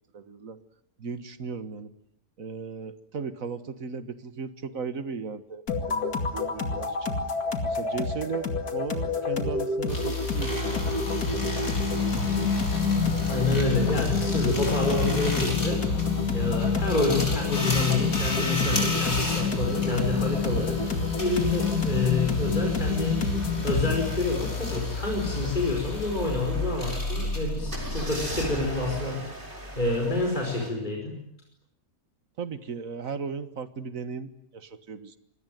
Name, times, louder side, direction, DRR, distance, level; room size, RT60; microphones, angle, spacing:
voice 1, 0.1-0.6 1.0-1.9 2.4-7.2 7.6-8.5 8.7-10.9 32.4-35.2, right 5 dB, 65° right, 12 dB, 1.8 m, -36 dB
sound 1, 5.7-24.1, left 4 dB, 85° left, 2.9 m, -28 dB
sound 2, 9.9-28.9, left 3 dB, 65° left, 6.2 m, -32 dB
voice 2, 13.3-15.8 16.3-20.8 21.2-23.2 23.6-29.2 29.8-31.1, left 2 dB, 30° left, 0 dB, 5.4 m, -28 dB
sound 3, 19.0-27.0 27.7-30.7, equal, 35° right, 5.3 m, -40 dB
27.0 x 21.5 x 9.3 m, 0.75 s
omnidirectional pair, 1.6 m